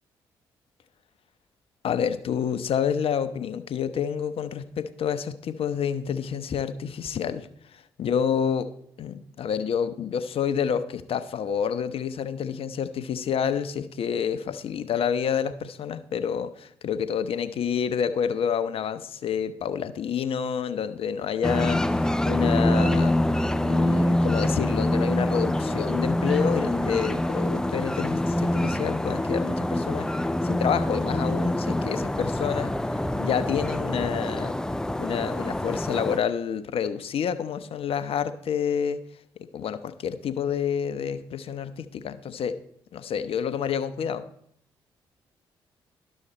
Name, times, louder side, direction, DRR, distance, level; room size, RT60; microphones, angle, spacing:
voice 1, 1.8-8.7 9.0-23.2 23.6-30.1 30.4-32.7 33.2-34.5 35.0-39.0 39.5-42.6 42.9-44.2, left 7 dB, 55° left, 11 dB, 0.7 m, -28 dB
sound 1, 21.4-36.2, left 1 dB, 5° left, 0.4 m, -25 dB
11.0 x 6.4 x 4.3 m, 0.68 s
figure-of-eight pair, 40°, 12 cm